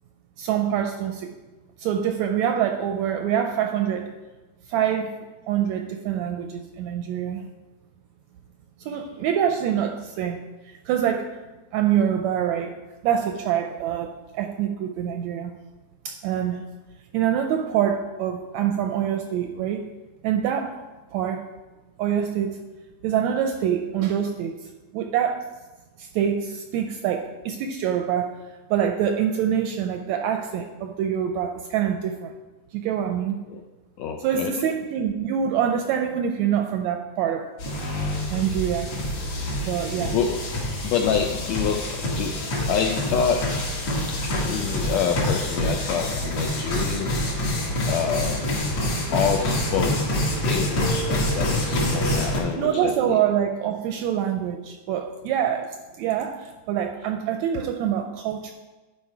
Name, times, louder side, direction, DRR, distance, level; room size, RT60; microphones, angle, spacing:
voice 1, 0.4-1.3 1.8-4.1 4.7-5.1 5.5-7.4 8.8-10.4 10.7-11.3 11.7-12.7 13.0-15.5 16.1-16.6 17.1-19.9 20.2-20.8 21.1-21.4 22.0-22.6 23.0-24.5 24.9-25.5 26.0-28.3 28.7-32.3 32.7-33.4 34.2-37.5 38.3-38.9 39.6-40.2 52.6-58.5, right 9 dB, 80° right, 5 dB, 1.6 m, -25 dB
voice 2, 34.0-34.5 39.6-39.8 40.1-40.4 40.8-42.4 42.7-43.5 44.4-47.2 47.9-48.5 49.1-50.1 50.4-53.2, left 7 dB, 80° left, 3 dB, 1.6 m, -27 dB
sound 1, 37.6-52.4, left 1 dB, 55° left, 2.9 m, -26 dB
11.0 x 4.9 x 4.6 m, 1.2 s
omnidirectional pair, 3.6 m